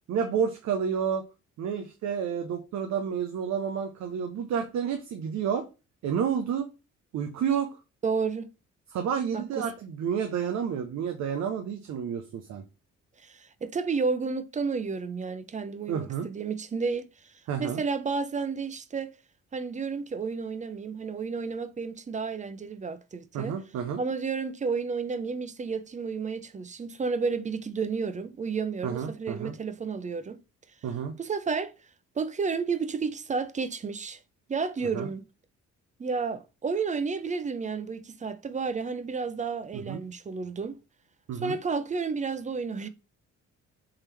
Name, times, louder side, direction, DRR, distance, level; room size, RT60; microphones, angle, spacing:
voice 1, 0.1-1.2 1.6-5.6 6.0-6.7 7.1-7.8 8.9-12.6 15.9-16.3 17.5-17.8 23.3-24.0 28.8-29.5 30.8-31.2 34.9-35.1 39.9-40.0 41.3-41.6, right 7 dB, 65° right, 0.6 m, -30 dB
voice 2, 8.0-8.5 9.3-9.4 13.2-17.0 17.6-19.1 19.5-23.6 24.0-30.4 31.2-31.7 32.2-34.2 34.5-35.2 36.0-40.8 41.3-42.9, right 5 dB, 25° right, 0.5 m, -31 dB
3.7 x 2.9 x 3.3 m
cardioid pair, 90°, 30 cm